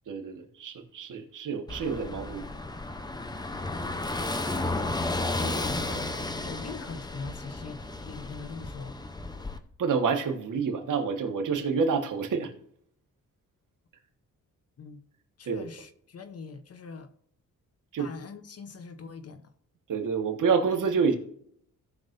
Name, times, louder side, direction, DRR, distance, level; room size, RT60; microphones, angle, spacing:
voice 1, 0.1-2.5 9.8-12.5 15.4-15.7 17.9-18.1 19.9-21.2, right 5 dB, 65° right, 1.6 m, -28 dB
Car passing by / Engine, 1.7-9.6, left 2 dB, 10° left, 0.7 m, -33 dB
voice 2, 3.5-4.9 5.2-9.0 14.8-15.0 15.4-17.1 18.0-19.5, left 5 dB, 45° left, 0.9 m, -42 dB
17.0 x 6.0 x 2.6 m
wide cardioid pair, 145°, 33 cm